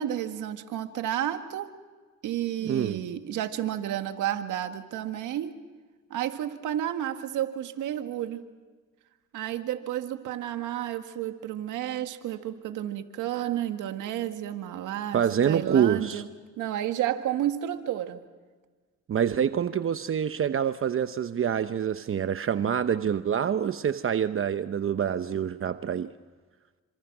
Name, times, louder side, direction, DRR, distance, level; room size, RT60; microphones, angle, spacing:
voice 1, 0.0-1.7 2.2-5.5 6.1-8.4 9.3-16.3 16.6-18.2, right 11 dB, 85° right, 7 dB, 1.9 m, -31 dB
voice 2, 2.6-3.0 15.1-16.2 19.1-26.1, right 8 dB, 45° right, 11 dB, 0.9 m, -26 dB
28.5 x 26.5 x 6.1 m, 1.4 s
cardioid pair, 90°, 30 cm